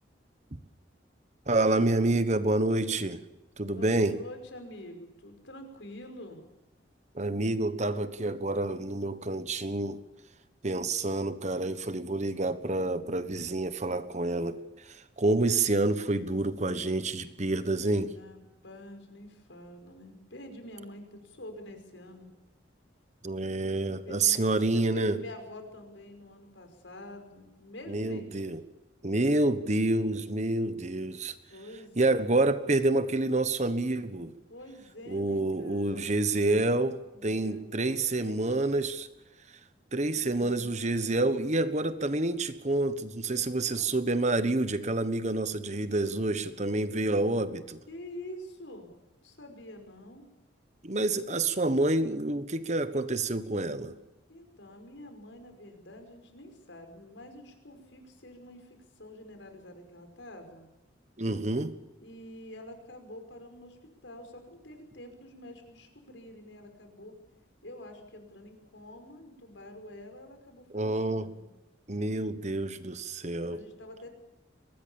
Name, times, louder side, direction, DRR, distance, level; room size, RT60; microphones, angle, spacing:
voice 1, 1.5-3.2 3.6-4.2 7.1-10.0 10.6-18.1 23.2-25.2 27.9-28.6 29.0-31.3 32.0-34.3 35.1-39.1 39.9-47.8 50.8-53.9 61.2-61.7 70.7-71.3 71.9-73.6, right 2 dB, 40° right, 1.3 m, -28 dB
voice 2, 3.7-6.4 18.1-22.3 24.0-28.5 31.5-32.4 34.5-36.2 37.1-38.7 40.1-41.4 43.6-43.9 47.9-48.9 49.2-50.2 54.3-60.7 62.0-67.1 67.6-71.5 73.5-74.1, left 1 dB, 85° left, 5.4 m, -47 dB
23.0 x 19.5 x 7.2 m
head